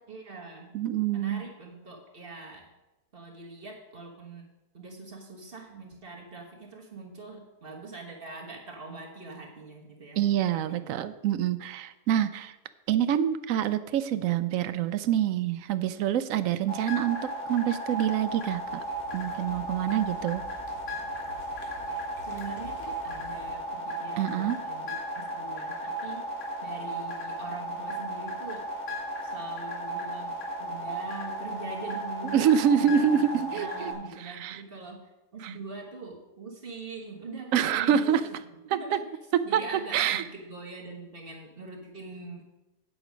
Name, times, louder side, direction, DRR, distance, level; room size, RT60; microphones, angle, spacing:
voice 1, 0.1-0.8 1.1-2.7 3.1-4.5 4.7-10.2 10.5-10.9 22.2-26.3 26.6-28.7 29.2-33.2 33.5-35.0 35.3-38.4 38.6-39.1 39.4-42.4, right 3 dB, 35° right, 0 dB, 1.5 m, -43 dB
voice 2, 0.7-1.4 10.2-12.5 12.9-18.6 19.1-20.4 24.2-24.6 32.3-33.9 34.2-34.6 35.4-35.5 37.5-38.3 38.7-39.0 39.3-39.6 39.9-40.2, right 9 dB, 70° right, 13 dB, 0.8 m, -26 dB
sound 1, 16.7-33.9, right 1 dB, 45° left, 2.8 m, -35 dB
dramalj croatia beach, 18.2-23.5, left 2 dB, 75° left, 2.1 m, -50 dB
8.5 x 8.0 x 5.1 m, 1.0 s
omnidirectional pair, 1.7 m